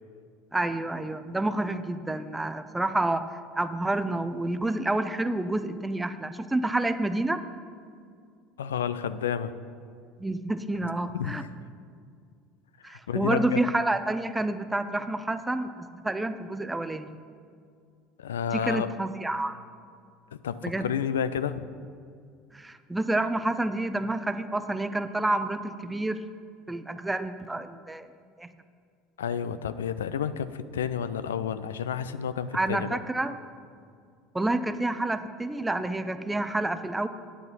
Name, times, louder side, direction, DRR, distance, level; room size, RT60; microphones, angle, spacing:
voice 1, 0.5-3.2 3.6-7.4 10.2-11.4 12.8-17.2 18.5-19.6 20.6-20.9 22.5-26.2 26.7-28.1 28.4-28.5 32.5-33.3 34.3-37.1, right 2 dB, 10° right, 11 dB, 0.6 m, -29 dB
voice 2, 8.6-9.6 11.1-11.5 12.8-13.6 18.2-18.9 20.4-21.7 29.2-33.0, left 8 dB, 85° left, 13 dB, 0.3 m, -30 dB
9.1 x 8.3 x 5.4 m, 2.3 s
hypercardioid pair, 75°, 0 cm